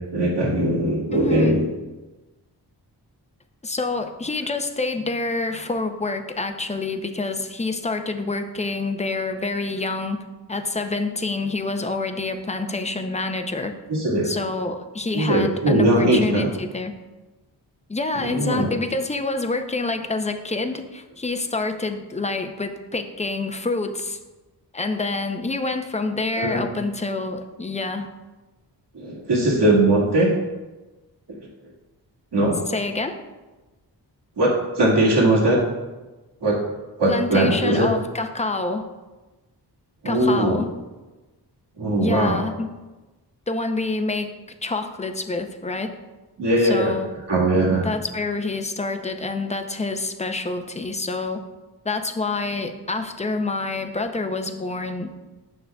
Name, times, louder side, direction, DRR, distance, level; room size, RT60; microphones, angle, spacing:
voice 1, 0.1-1.7 13.9-14.3 15.1-16.5 18.1-18.7 26.4-26.7 28.9-30.3 31.4-31.5 32.3-32.6 34.4-35.6 36.4-36.6 37.0-37.9 40.0-40.6 41.8-42.4 46.4-46.9 47.3-47.9, right 1 dB, 75° right, -5 dB, 2.0 m, -20 dB
voice 2, 1.1-1.6 3.6-10.2 10.5-13.7 14.2-17.0 17.9-24.2 24.7-28.1 32.7-33.2 37.1-38.8 40.0-40.7 42.0-42.7 43.5-44.3 44.6-45.9 46.6-47.1 47.7-51.4 51.8-55.1, left 3 dB, 15° left, 6 dB, 0.6 m, -27 dB
9.0 x 6.3 x 2.3 m, 1.2 s
cardioid pair, 65°, 42 cm